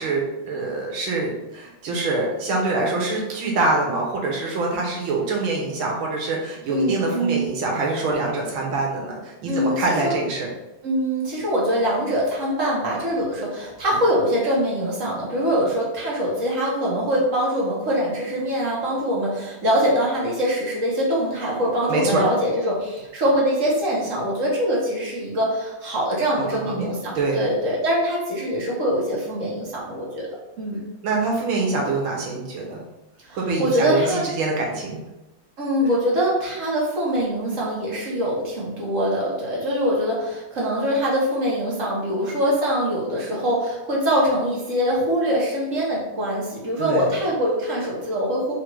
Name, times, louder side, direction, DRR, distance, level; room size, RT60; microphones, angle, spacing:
voice 1, 0.0-10.5 21.9-22.2 26.4-26.9 27.2-27.4 31.0-32.8 33.3-35.0 46.8-47.1, right 3 dB, 80° right, -1 dB, 1.8 m, -25 dB
voice 2, 6.7-7.4 9.5-10.2 10.8-30.3 30.6-30.8 33.2-34.3 35.6-48.5, equal, 45° right, -4 dB, 1.4 m, -23 dB
4.0 x 2.6 x 4.5 m, 0.98 s
omnidirectional pair, 2.2 m